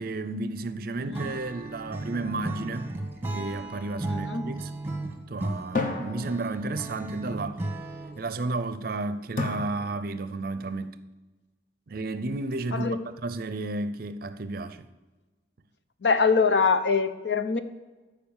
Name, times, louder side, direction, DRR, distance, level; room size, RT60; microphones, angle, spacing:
voice 1, 0.0-3.0 3.3-4.7 5.3-7.6 8.2-11.0 11.9-14.9, right 2 dB, 50° right, 0.5 m, -32 dB
Acoustic guitar / Strum, 1.1-8.3, right 2 dB, 10° right, 1.0 m, -36 dB
sound 1, 2.1-3.7 5.7-7.1 9.4-10.5, left 3 dB, 45° left, 1.2 m, -35 dB
voice 2, 4.1-4.5 12.7-13.1 16.0-17.6, left 5 dB, 70° left, 0.8 m, -24 dB
13.5 x 5.0 x 7.2 m
head